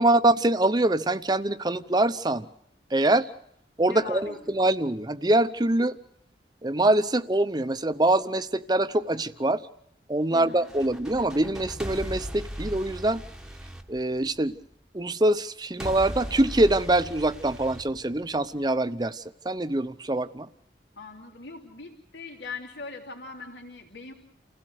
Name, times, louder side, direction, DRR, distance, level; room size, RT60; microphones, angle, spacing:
voice 1, 0.0-2.5 2.9-3.3 3.8-6.0 6.6-9.7 10.1-13.2 13.9-14.6 14.9-20.5, right 1 dB, 25° right, 12 dB, 0.8 m, -24 dB
voice 2, 3.9-4.4 10.3-10.7 21.0-24.1, left 4 dB, 80° left, 0 dB, 3.3 m, -40 dB
sound 1, 10.5-14.6 15.8-18.6, equal, 5° right, 1.1 m, -38 dB
29.5 x 16.5 x 6.5 m, 0.73 s
head